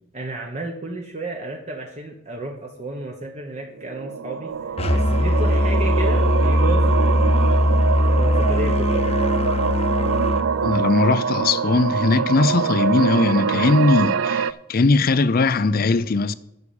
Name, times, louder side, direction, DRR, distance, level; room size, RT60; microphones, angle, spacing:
voice 1, 0.1-7.4 8.2-9.1, right 2 dB, 35° right, 1.0 m, -32 dB
sound 1, 3.8-14.5, right 6 dB, 80° right, 0.4 m, -24 dB
Musical instrument, 4.8-10.4, left 1 dB, 30° left, 0.9 m, -20 dB
voice 2, 10.6-16.3, left 3 dB, 45° left, 0.5 m, -19 dB
9.5 x 6.4 x 7.1 m
head